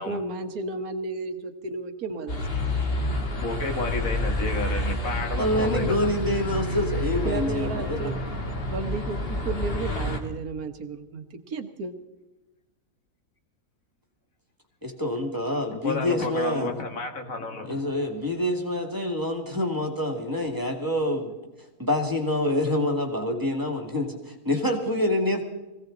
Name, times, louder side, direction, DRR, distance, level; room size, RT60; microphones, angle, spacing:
voice 1, 0.0-2.4 3.0-3.2 7.2-8.3 8.6-11.9, right 3 dB, 70° right, 7 dB, 1.6 m, -33 dB
sound 1, 2.3-10.2, left 1 dB, 40° left, 1.8 m, -29 dB
voice 2, 3.3-6.1 15.8-17.9, left 3 dB, 60° left, 5 dB, 1.9 m, -31 dB
voice 3, 5.4-8.0 14.8-16.8 17.7-21.3 21.8-25.4, left 1 dB, 15° right, 3 dB, 2.1 m, -26 dB
20.5 x 16.5 x 3.9 m, 1.1 s
omnidirectional pair, 1.6 m